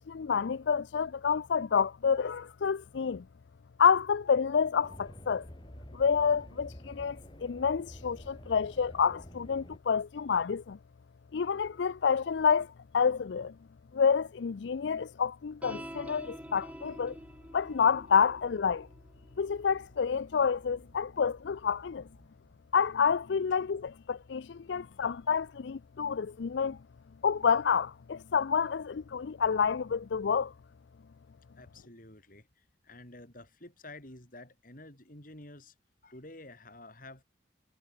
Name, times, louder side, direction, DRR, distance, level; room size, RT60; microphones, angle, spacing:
voice 1, 0.0-3.2 3.8-5.4 5.9-10.8 11.3-13.5 13.9-17.2 17.5-18.9 19.4-22.1 22.7-26.8 27.2-30.5, left 6 dB, 70° left, 0.4 m, -28 dB
sound 1, 4.8-9.8, equal, 25° left, 7.8 m, -49 dB
sound 2, 15.6-22.3, equal, 5° right, 3.2 m, -49 dB
voice 2, 31.6-35.7 36.0-37.2, left 2 dB, 45° left, 4.6 m, -50 dB
head